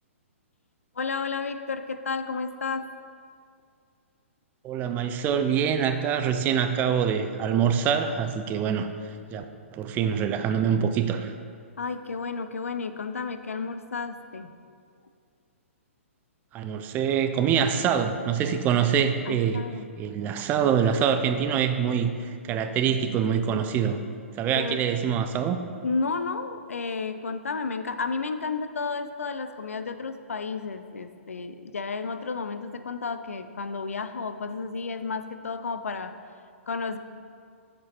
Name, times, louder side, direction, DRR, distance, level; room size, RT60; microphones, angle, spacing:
voice 1, 1.0-2.9 11.8-14.5 19.3-19.9 24.5-24.8 25.8-36.1 36.7-37.0, left 4 dB, 85° left, 10 dB, 0.4 m, -32 dB
voice 2, 4.6-8.9 9.3-9.4 9.7-11.3 16.5-19.6 20.0-24.0 24.4-25.6, right 8 dB, 25° right, 9 dB, 0.4 m, -25 dB
6.7 x 5.3 x 4.3 m, 2.2 s
hypercardioid pair, 125°, 7 cm